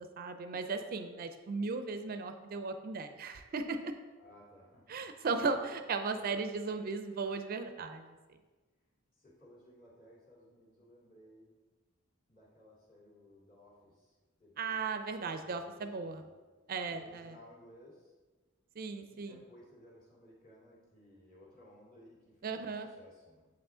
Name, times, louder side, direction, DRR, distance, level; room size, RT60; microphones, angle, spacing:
voice 1, 0.0-3.9 4.9-8.2 14.6-16.2 16.7-17.3 18.8-19.4 22.4-22.9, right 4 dB, 45° right, 8 dB, 0.4 m, -36 dB
voice 2, 4.2-5.0 6.0-6.3 9.1-11.5 12.3-15.0 15.3-16.4 16.9-18.1 19.1-23.5, left 1 dB, 45° left, -6 dB, 2.2 m, -59 dB
7.3 x 4.8 x 3.7 m, 1.3 s
head